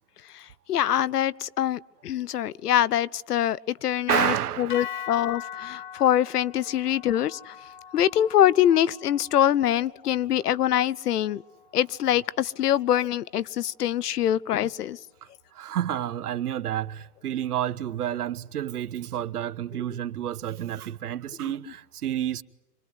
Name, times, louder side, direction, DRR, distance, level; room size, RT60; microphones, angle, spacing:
voice 1, 0.7-7.5 7.9-11.4 11.7-15.0, left 11 dB, 80° left, 0.8 m, -24 dB
voice 2, 4.1-5.0 15.5-22.4, right 11 dB, 75° right, 1.1 m, -30 dB
sound 1, 4.7-13.0, left 9 dB, 30° left, 0.8 m, -42 dB
26.5 x 21.5 x 9.5 m
hypercardioid pair, 175°, 46 cm